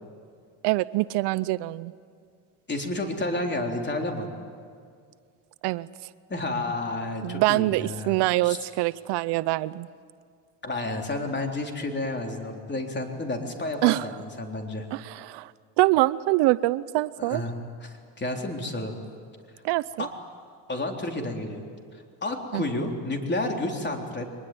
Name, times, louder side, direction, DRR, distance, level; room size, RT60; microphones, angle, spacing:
voice 1, 0.6-1.9 5.6-5.9 7.2-9.9 13.8-14.1 14.9-15.5 15.8-17.4 19.6-20.1 22.5-22.6, right 19 dB, 75° right, 16 dB, 0.7 m, -24 dB
voice 2, 2.7-4.3 6.3-8.2 8.4-8.6 10.6-14.9 17.2-17.6 17.8-18.9 20.0-20.1 20.7-21.6 22.2-24.2, left 2 dB, 25° left, 2 dB, 3.8 m, -30 dB
23.0 x 20.5 x 9.4 m, 2.2 s
supercardioid pair, 90°, 42 cm